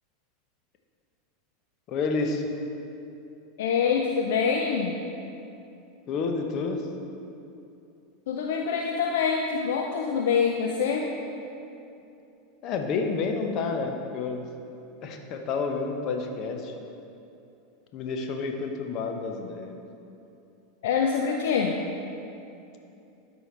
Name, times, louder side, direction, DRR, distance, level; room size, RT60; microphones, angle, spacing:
voice 1, 1.9-2.5 6.1-6.8 12.6-14.5 15.0-16.7 17.9-19.8, left 4 dB, 45° left, 4 dB, 0.8 m, -29 dB
voice 2, 3.6-5.0 8.3-11.1 20.8-21.8, left 6 dB, 65° left, 2 dB, 0.4 m, -25 dB
12.5 x 4.8 x 3.3 m, 2.8 s
figure-of-eight pair, 85°, 0 cm